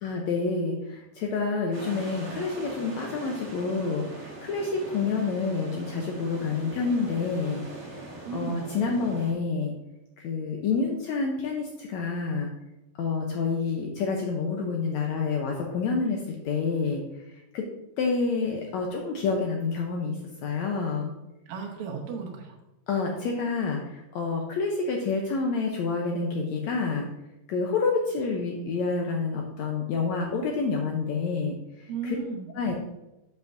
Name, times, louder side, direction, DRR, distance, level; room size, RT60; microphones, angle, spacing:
voice 1, 0.0-7.6 7.9-9.7 10.2-12.5 13.0-17.0 17.5-17.7 18.0-21.1 22.9-27.1 27.5-31.5 32.0-32.2 32.5-32.7, left 4 dB, 80° left, 1 dB, 1.6 m, -28 dB
sound 1, 1.7-9.3, right 2 dB, 50° right, 2.1 m, -41 dB
voice 2, 8.3-8.6 21.5-22.6 31.9-32.5, right 6 dB, 80° right, 1 dB, 2.8 m, -35 dB
8.0 x 7.2 x 2.6 m, 0.95 s
omnidirectional pair, 4.1 m